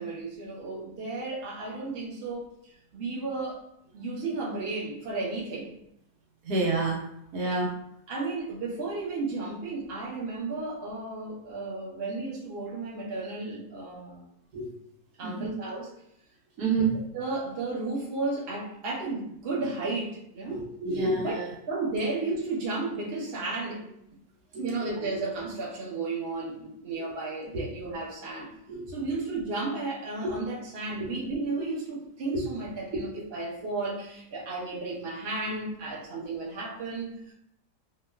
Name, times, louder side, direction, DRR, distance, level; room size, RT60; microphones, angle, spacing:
voice 1, 0.0-2.5 2.9-3.6 3.9-5.7 7.4-7.6 8.1-14.2 15.2-15.9 16.8-16.9 17.1-20.6 21.2-21.4 21.7-23.8 24.6-28.5 28.9-37.3, right 3 dB, 55° right, -4 dB, 0.7 m, -33 dB
voice 2, 6.5-7.0 7.3-7.7 14.5-14.7 15.2-15.5 16.6-16.9 20.5-21.5 28.7-28.8 30.2-30.3 32.3-32.4, right 3 dB, 75° right, -1 dB, 1.2 m, -28 dB
2.9 x 2.3 x 2.2 m, 0.75 s
omnidirectional pair, 1.8 m